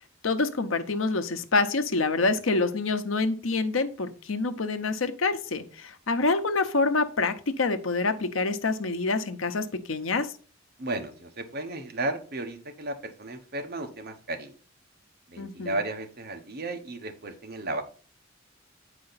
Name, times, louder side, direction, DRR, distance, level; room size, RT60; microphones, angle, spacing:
voice 1, 0.2-10.3 15.4-15.8, left 3 dB, 85° left, 9 dB, 0.8 m, -26 dB
voice 2, 10.8-14.5 15.3-17.8, right 2 dB, 50° right, 6 dB, 1.1 m, -34 dB
8.6 x 5.0 x 4.0 m, 0.39 s
head